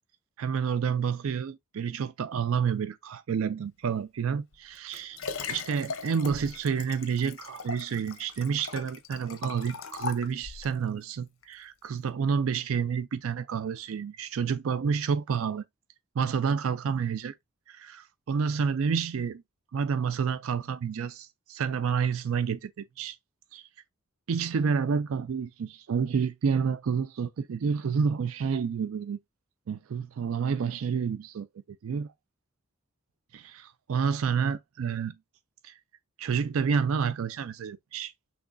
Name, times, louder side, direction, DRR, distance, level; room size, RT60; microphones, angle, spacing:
voice 1, 0.4-5.2 5.5-15.6 16.2-17.3 17.7-19.4 19.7-23.2 23.5-23.7 24.3-29.2 29.7-32.1 33.3-35.2 35.6-35.8 36.2-38.1, right 6 dB, 75° right, 0.4 m, -29 dB
Liquid, 4.5-10.8 11.4-11.5, left 5 dB, 65° left, 0.7 m, -39 dB
6.0 x 3.1 x 2.5 m
head